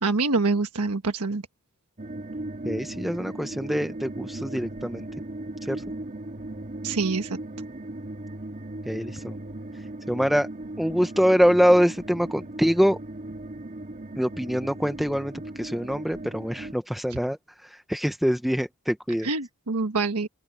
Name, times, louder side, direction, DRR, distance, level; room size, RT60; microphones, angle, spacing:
voice 1, 0.0-1.4 6.8-7.4 19.2-20.3, right 3 dB, 80° right, 1.3 m, -25 dB
sound 1, 2.0-16.7, right 1 dB, 35° right, 1.8 m, -37 dB
voice 2, 2.6-5.1 5.6-5.8 8.9-9.4 10.1-10.5 10.8-13.0 14.2-19.3, equal, ahead, 0.5 m, -24 dB
open air
head